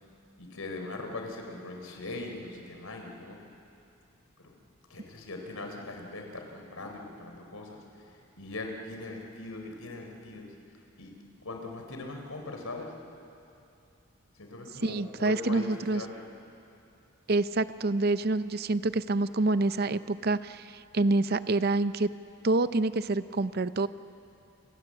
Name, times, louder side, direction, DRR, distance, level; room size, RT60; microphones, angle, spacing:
voice 1, 0.4-3.4 4.4-4.5 4.9-8.1 8.4-10.5 11.0-11.1 11.4-12.9 14.4-16.2, left 2 dB, 75° left, 3 dB, 4.0 m, -40 dB
voice 2, 14.8-16.0 17.3-22.1 22.4-23.9, right 2 dB, 45° right, 14 dB, 0.6 m, -27 dB
29.0 x 24.0 x 7.7 m, 2.7 s
head